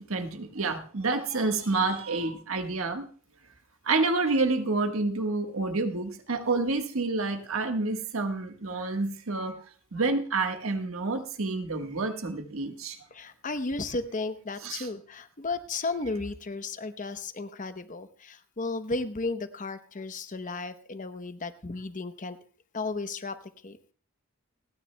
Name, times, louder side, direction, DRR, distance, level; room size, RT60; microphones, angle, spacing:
voice 1, 0.0-3.1 3.8-9.6 9.9-13.0 14.6-14.9, right 3 dB, 80° right, 5 dB, 1.4 m, -28 dB
voice 2, 13.1-22.4 22.7-23.4 23.6-23.8, left 3 dB, 40° left, 11 dB, 0.8 m, -34 dB
29.0 x 9.8 x 2.2 m, 0.43 s
head